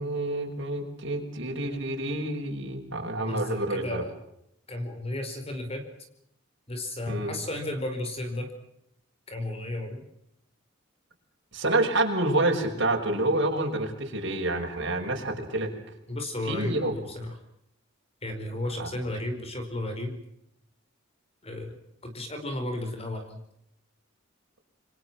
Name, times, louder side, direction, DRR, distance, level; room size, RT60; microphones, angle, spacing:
voice 1, 0.0-4.0 7.1-7.4 11.5-15.7 16.4-16.9 18.8-19.0, right 2 dB, 60° right, 1 dB, 6.4 m, -28 dB
voice 2, 3.2-4.2 4.7-5.8 6.7-8.5 9.3-10.1 16.1-17.4 18.2-20.2 21.4-21.8 22.0-23.4, left 1 dB, 30° left, 6 dB, 4.8 m, -33 dB
28.0 x 25.0 x 6.2 m, 0.79 s
head